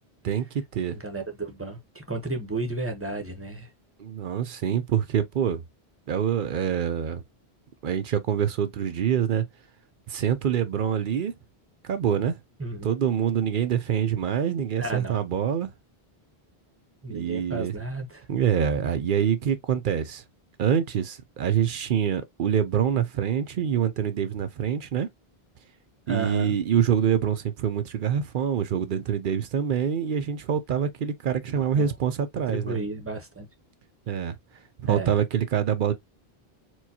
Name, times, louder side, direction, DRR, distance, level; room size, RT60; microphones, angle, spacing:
voice 1, 0.2-1.0 4.0-5.6 6.1-7.2 7.8-9.5 10.1-11.3 11.8-12.4 12.8-15.7 17.1-17.7 18.3-20.2 20.6-25.1 26.1-32.8 34.1-34.4 34.8-35.9, right 8 dB, 60° right, 0.7 m, -25 dB
voice 2, 0.9-3.7 12.6-12.9 14.8-15.2 17.0-18.2 26.1-26.5 31.5-31.9 32.5-33.5 34.9-35.1, right 2 dB, 15° right, 0.8 m, -33 dB
4.5 x 2.2 x 2.7 m
omnidirectional pair, 1.0 m